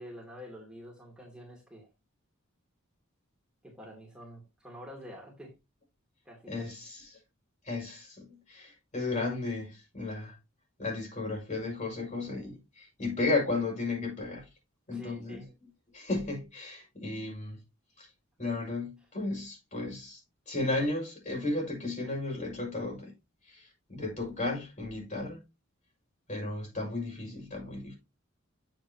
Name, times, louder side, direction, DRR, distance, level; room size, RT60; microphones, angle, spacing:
voice 1, 0.0-1.9 3.6-5.5 6.2-6.5 14.9-15.5, equal, 5° right, 2.8 m, -47 dB
voice 2, 6.5-7.1 7.6-10.4 10.8-14.5 14.9-15.4 15.9-17.6 18.0-18.1 18.4-20.2 20.5-23.1 23.5-25.4 26.3-28.0, left 2 dB, 40° left, 5.9 m, -34 dB
9.4 x 7.6 x 3.0 m
head